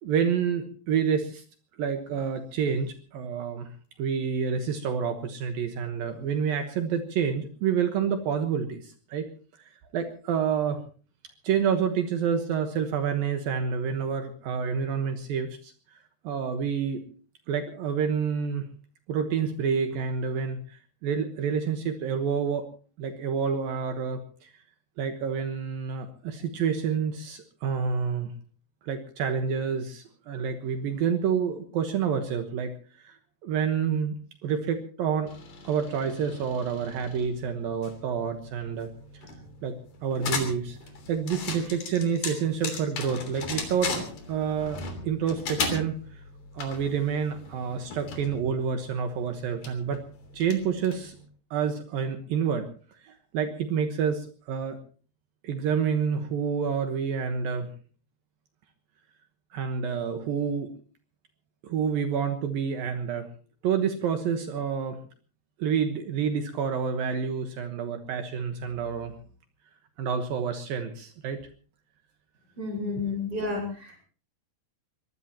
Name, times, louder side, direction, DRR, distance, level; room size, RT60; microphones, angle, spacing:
voice 1, 0.0-1.4 1.8-3.7 4.0-9.3 9.9-10.8 11.4-15.7 16.2-17.0 17.5-18.6 19.1-22.7 23.0-24.5 25.0-28.3 28.8-32.7 33.0-34.2 34.4-35.3 35.6-38.9 39.6-39.8 40.0-40.8 41.1-46.0 46.5-50.0 50.3-51.2 51.5-52.7 53.0-54.8 55.4-57.7 59.5-60.7 61.6-63.3 63.6-65.0 65.6-69.1 70.0-71.4 72.7-73.2, right 7 dB, 70° right, 6 dB, 2.8 m, -28 dB
sound 1, 35.3-51.2, left 4 dB, 55° left, 4.5 m, -38 dB
voice 2, 72.6-74.0, left 3 dB, 25° right, 1 dB, 5.9 m, -31 dB
23.5 x 19.0 x 2.9 m, 0.40 s
omnidirectional pair, 4.7 m